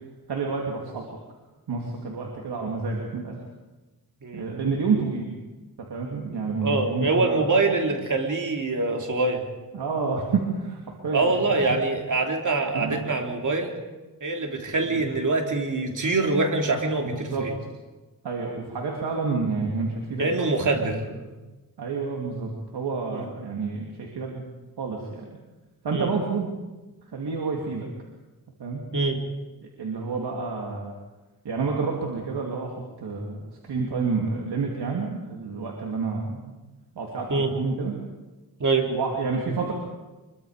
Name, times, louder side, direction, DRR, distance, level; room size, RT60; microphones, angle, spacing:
voice 1, 0.3-1.0 1.7-3.3 4.3-5.3 5.9-7.4 9.7-10.8 11.0-11.4 12.7-13.1 17.0-17.4 18.2-20.3 20.7-21.0 21.8-24.5 24.8-25.3 25.8-26.5 27.1-27.9 28.6-28.8 29.8-30.9 31.4-32.7 33.0-33.4 33.7-36.5 37.0-37.9 38.9-39.7, right 4 dB, 85° right, -1 dB, 3.0 m, -29 dB
voice 2, 4.2-4.5 6.3-9.4 11.1-13.7 14.2-17.5 20.2-21.0 23.1-23.3 25.9-26.1 28.9-29.2 37.3-37.5 38.6-38.9, right 3 dB, 50° right, 3 dB, 3.2 m, -24 dB
24.5 x 23.0 x 5.2 m, 1.2 s
cardioid pair, 85°, 39 cm